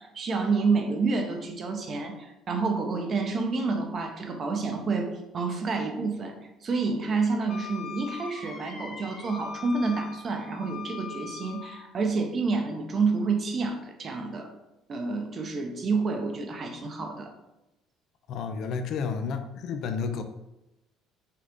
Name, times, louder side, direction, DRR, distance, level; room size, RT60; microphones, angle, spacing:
voice 1, 0.0-6.3 6.6-14.5 14.9-17.3, right 4 dB, 45° right, 3 dB, 0.9 m, -29 dB
Wind instrument woodwind instrument, 7.5-11.8, left 6 dB, 45° left, 1.1 m, -41 dB
voice 2, 18.3-20.2, left 5 dB, 65° left, 7 dB, 0.5 m, -31 dB
5.7 x 2.4 x 3.6 m, 0.93 s
supercardioid pair, 75°, 0 cm